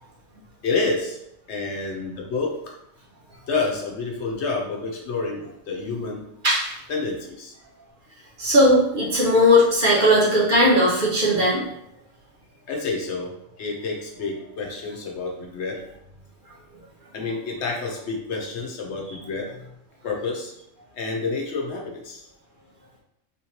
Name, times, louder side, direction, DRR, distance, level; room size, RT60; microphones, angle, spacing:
voice 1, 0.6-1.2 1.5-2.7 3.5-6.2 6.9-7.5 12.7-13.3 13.6-15.8 17.1-19.7 20.0-20.5 20.9-22.3, left 3 dB, 65° left, 0 dB, 0.9 m, -29 dB
voice 2, 6.4-6.8 8.4-11.6, left 1 dB, 45° right, -5 dB, 0.8 m, -18 dB
3.5 x 3.1 x 2.8 m, 0.80 s
omnidirectional pair, 1.3 m